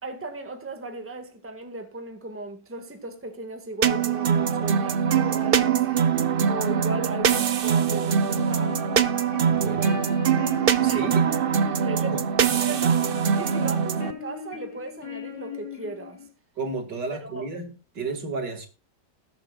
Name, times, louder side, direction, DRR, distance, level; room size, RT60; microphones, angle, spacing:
voice 1, 0.0-6.0 6.4-8.8 9.6-10.0 10.8-11.4 11.8-16.3 17.2-17.4, right 2 dB, 10° right, 1.5 m, -36 dB
sound 1, 3.8-14.1, right 7 dB, 55° right, 0.6 m, -23 dB
sound 2, 8.3-16.3, left 5 dB, 65° left, 4.1 m, -40 dB
voice 2, 9.5-9.8 10.8-11.2 12.1-12.2 16.6-18.7, right 3 dB, 75° right, 2.7 m, -32 dB
20.0 x 8.8 x 2.3 m
omnidirectional pair, 1.9 m